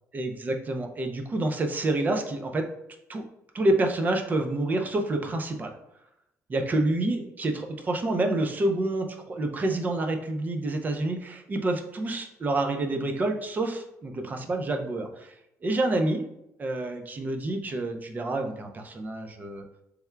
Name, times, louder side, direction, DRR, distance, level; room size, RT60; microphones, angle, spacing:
voice 1, 0.1-2.7 3.1-3.2 3.5-5.7 6.5-15.3 15.6-16.3 16.6-19.6, right 2 dB, 30° right, 5 dB, 0.5 m, -28 dB
4.4 x 3.4 x 2.2 m, 0.81 s
cardioid pair, 125°, 6 cm